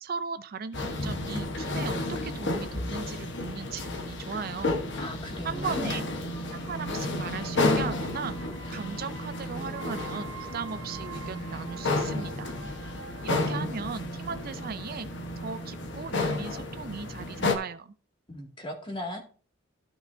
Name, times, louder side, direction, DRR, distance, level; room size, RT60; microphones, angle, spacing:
voice 1, 0.0-4.8 5.4-6.1 6.5-8.4 8.7-12.5 13.2-15.1 15.4-17.9, right 5 dB, 50° right, 12 dB, 0.5 m, -37 dB
sound 1, 0.7-17.6, left 2 dB, 60° left, 1.1 m, -32 dB
voice 2, 5.0-5.9 18.3-19.2, left 1 dB, 25° left, 1 dB, 2.1 m, -37 dB
sound 2, 6.3-16.0 16.3-16.4, right 6 dB, 85° right, 1.2 m, -48 dB
13.5 x 6.0 x 2.6 m, 0.39 s
head